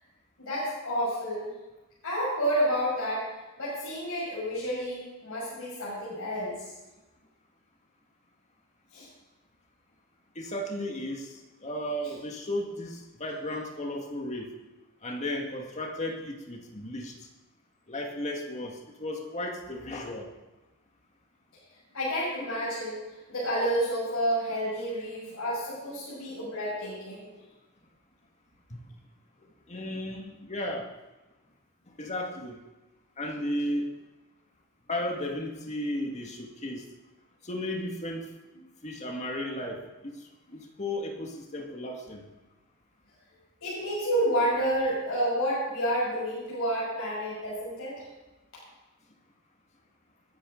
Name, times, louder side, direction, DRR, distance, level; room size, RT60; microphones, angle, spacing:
voice 1, 0.4-1.5 2.0-3.3 3.6-6.6 8.9-9.1 21.9-23.0 23.3-27.2 43.6-48.1, equal, 65° left, -8 dB, 6.1 m, -29 dB
voice 2, 10.4-11.3 11.6-14.5 15.0-17.1 17.9-20.3 28.7-28.8 29.7-30.9 32.0-32.6 33.2-33.9 34.9-36.8 37.4-38.3 38.8-40.1 40.5-42.2, left 1 dB, 30° left, 1 dB, 1.9 m, -34 dB
21.0 x 10.5 x 3.9 m, 1.1 s
head